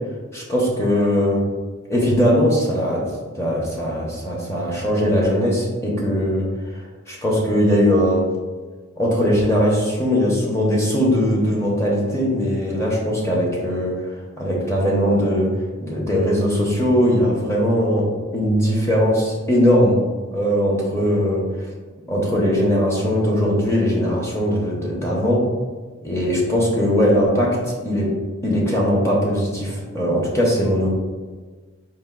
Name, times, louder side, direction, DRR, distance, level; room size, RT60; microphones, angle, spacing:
voice 1, 0.3-1.4 1.9-3.1 3.4-6.5 7.1-8.2 9.0-14.1 14.4-15.5 15.8-18.1 18.3-20.0 20.3-21.4 22.1-25.4 26.0-27.5 27.8-28.1 28.4-31.0, equal, 15° left, -4 dB, 0.8 m, -20 dB
4.3 x 2.5 x 3.7 m, 1.4 s
head